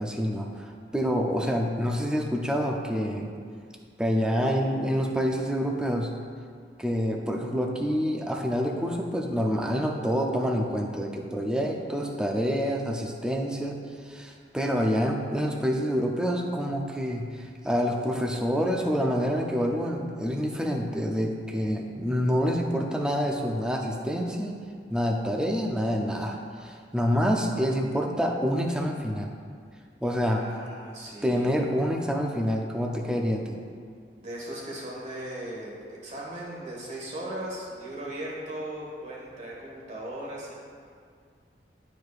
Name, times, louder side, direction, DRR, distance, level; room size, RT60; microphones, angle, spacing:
voice 1, 0.0-3.3 4.0-6.1 6.8-13.8 14.1-24.5 24.9-29.3 30.0-30.4 31.2-33.6, equal, 5° right, 0 dB, 0.5 m, -27 dB
voice 2, 30.3-31.6 34.2-40.5, right 1 dB, 40° right, -5 dB, 1.6 m, -38 dB
11.0 x 4.7 x 2.5 m, 2.1 s
head